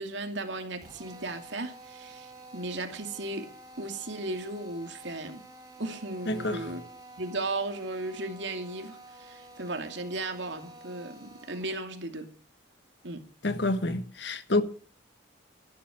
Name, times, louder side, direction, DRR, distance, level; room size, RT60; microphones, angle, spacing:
voice 1, 0.0-3.5 3.8-5.4 5.8-6.8 7.2-12.3 13.0-13.2, right 2 dB, 70° right, 2.7 m, -36 dB
Drill, 0.8-11.8, right 1 dB, 20° right, 4.1 m, -50 dB
voice 2, 6.3-6.8 13.4-14.6, left 2 dB, 60° left, 1.4 m, -28 dB
13.5 x 12.5 x 6.2 m
head